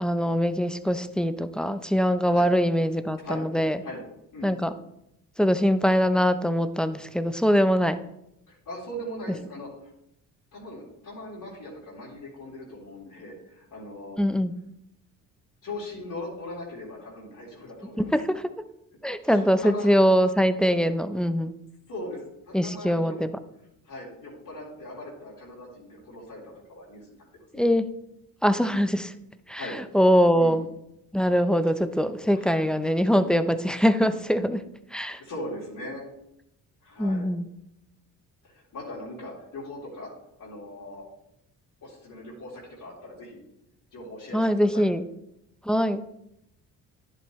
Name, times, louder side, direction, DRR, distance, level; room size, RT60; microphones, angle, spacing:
voice 1, 0.0-3.8 4.4-4.7 5.4-8.0 14.2-14.6 18.0-18.5 19.0-21.5 22.5-23.3 27.5-27.9 28.4-29.1 29.5-30.7 31.1-34.7 34.9-35.2 37.0-37.5 44.3-45.0 45.6-46.0, equal, ahead, 11 dB, 0.6 m, -23 dB
voice 2, 8.5-9.7 10.5-14.2 15.6-18.1 19.2-19.9 21.9-23.2 23.8-27.1 27.5-27.6 29.5-29.8 30.3-30.6 32.3-32.5 35.2-36.0 36.8-37.3 38.4-40.1 40.4-41.0 41.8-43.4 43.9-44.9, left 1 dB, 60° left, -5 dB, 3.7 m, -39 dB
10.5 x 7.6 x 3.2 m, 0.81 s
supercardioid pair, 65°, 38 cm